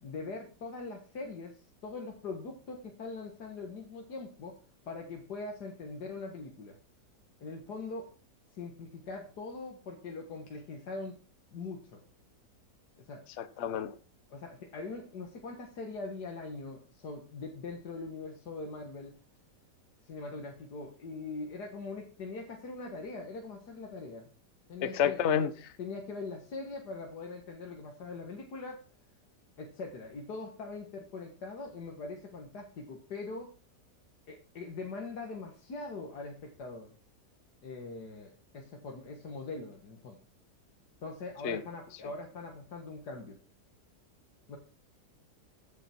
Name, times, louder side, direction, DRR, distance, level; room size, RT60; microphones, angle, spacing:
voice 1, 0.0-4.6 4.9-6.8 7.4-8.1 8.5-11.2 11.5-12.0 13.0-13.2 14.3-19.2 20.0-24.3 24.7-25.2 25.8-28.8 29.6-33.5 34.3-36.9 37.6-40.2 41.0-43.4 44.5-44.6, left 3 dB, 70° left, 2.1 m, -42 dB
voice 2, 13.4-13.9 24.8-25.7 41.4-41.6, left 8 dB, 50° left, 1.0 m, -30 dB
15.5 x 8.1 x 4.5 m
omnidirectional pair, 1.8 m